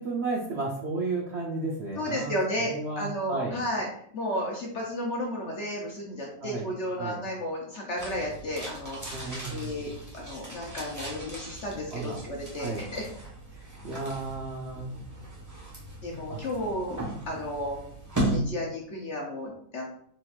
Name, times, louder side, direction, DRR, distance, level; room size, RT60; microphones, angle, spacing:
voice 1, 0.0-2.4 2.7-3.6 6.4-6.7 7.0-7.2 9.1-9.8 11.9-12.2 12.6-12.9 13.8-14.9 16.3-16.4, right 3 dB, 65° right, -2 dB, 0.6 m, -33 dB
voice 2, 2.0-3.9 4.1-13.0 16.0-17.8 18.2-19.9, left 1 dB, 55° left, -1 dB, 0.8 m, -33 dB
sound 1, 8.0-18.4, right 1 dB, 15° right, 0.7 m, -37 dB
4.3 x 3.9 x 2.4 m, 0.64 s
omnidirectional pair, 1.8 m